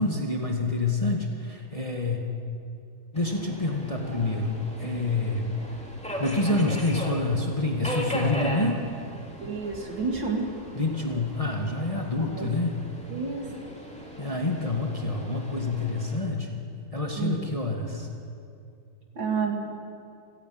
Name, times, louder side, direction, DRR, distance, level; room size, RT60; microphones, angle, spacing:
voice 1, 0.0-2.3 3.1-5.5 6.2-8.8 10.7-12.8 14.2-16.6 16.9-18.1, left 2 dB, 20° left, 1 dB, 1.7 m, -27 dB
Subway metro underground, 3.1-16.2, equal, 5° left, 2.6 m, -38 dB
voice 2, 9.4-10.5 12.3-12.5 13.1-13.5 17.2-17.4 19.1-19.7, right 5 dB, 70° right, 1 dB, 3.4 m, -29 dB
28.5 x 10.0 x 9.5 m, 2.5 s
omnidirectional pair, 2.1 m